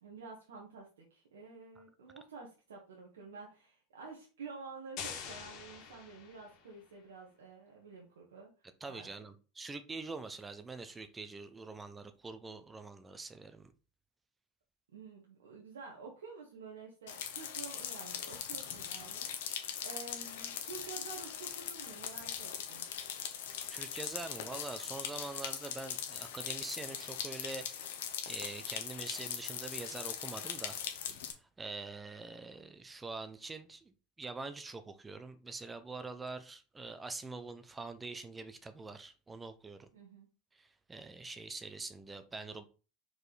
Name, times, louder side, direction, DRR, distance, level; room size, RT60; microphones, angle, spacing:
voice 1, 0.0-8.5 8.9-9.3 14.9-22.8 39.9-40.3, right 4 dB, 85° right, -2 dB, 1.6 m, -50 dB
sound 1, 5.0-6.8, left 7 dB, 55° left, 2.0 m, -45 dB
voice 2, 8.8-13.7 23.7-27.9 28.3-30.8 31.1-39.9 40.5-42.6, right 3 dB, 15° right, 10 dB, 0.9 m, -45 dB
sound 2, 17.1-31.3, left 9 dB, 75° left, 1.3 m, -41 dB
5.0 x 4.7 x 4.1 m, 0.35 s
hypercardioid pair, 90°, 0 cm